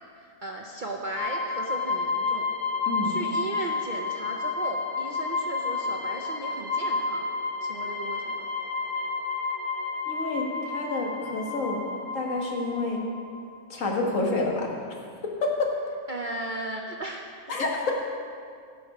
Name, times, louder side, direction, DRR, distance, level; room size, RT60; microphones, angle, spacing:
voice 1, 0.4-2.4 3.0-7.3 7.6-8.4 16.1-17.3, right 2 dB, 50° right, 1 dB, 0.6 m, -36 dB
sound 1, 1.2-13.6, left 4 dB, 35° left, 0.3 m, -31 dB
voice 2, 10.1-11.8 12.1-13.0 13.7-14.7 15.4-15.7 17.5-17.9, left 3 dB, 65° left, -1 dB, 1.8 m, -28 dB
15.0 x 6.0 x 5.3 m, 2.2 s
omnidirectional pair, 1.5 m